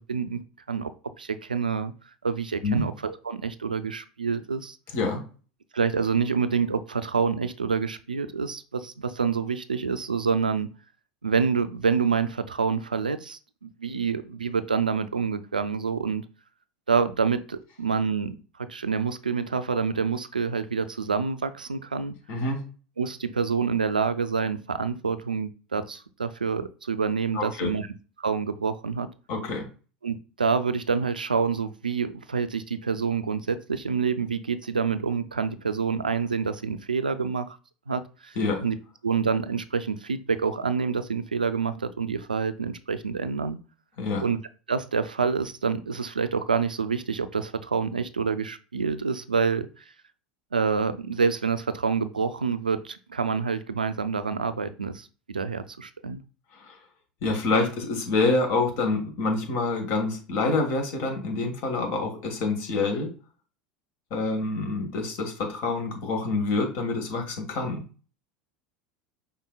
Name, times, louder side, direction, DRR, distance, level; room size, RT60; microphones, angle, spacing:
voice 1, 0.1-0.4 0.7-0.9 1.2-1.9 2.2-4.8 5.7-10.7 11.2-16.2 16.9-22.2 23.0-27.9 28.2-29.1 30.0-37.6 37.9-38.4 38.6-38.8 39.0-43.6 44.2-44.4 44.7-49.7 50.5-56.2, right 5 dB, 90° right, 12 dB, 0.3 m, -27 dB
voice 2, 4.9-5.2 22.3-22.6 27.3-27.7 29.3-29.7 38.4-38.6 44.0-44.2 56.6-56.8 57.2-63.1 64.1-67.8, left 3 dB, 55° left, 4 dB, 1.3 m, -27 dB
5.5 x 3.6 x 2.2 m, 0.36 s
figure-of-eight pair, 75°, 4 cm